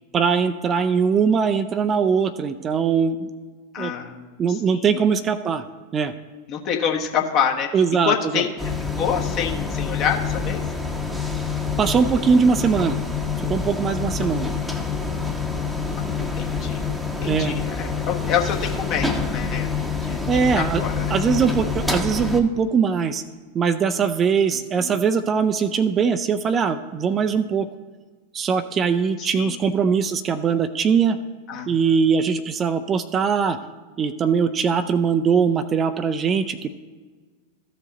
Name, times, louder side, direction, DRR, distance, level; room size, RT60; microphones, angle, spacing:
voice 1, 0.1-3.3 3.8-3.9 4.4-5.6 5.9-6.1 7.7-8.4 11.8-13.0 13.5-14.5 17.3-17.6 20.3-20.8 21.1-23.2 23.5-27.7 28.3-31.2 31.7-33.6 34.0-36.7, right 6 dB, 25° right, 10 dB, 0.4 m, -21 dB
voice 2, 3.7-4.2 4.5-4.8 6.5-7.7 8.0-8.5 9.0-10.6 14.2-14.3 16.4-16.8 17.2-20.2 20.6-21.1 24.5-25.0 29.2-29.6 31.5-31.8, left 7 dB, 40° left, 1 dB, 1.3 m, -27 dB
sound 1, 8.6-22.4, left 4 dB, ahead, 0.9 m, -27 dB
14.5 x 4.8 x 3.9 m, 1.4 s
figure-of-eight pair, 90°, 0 cm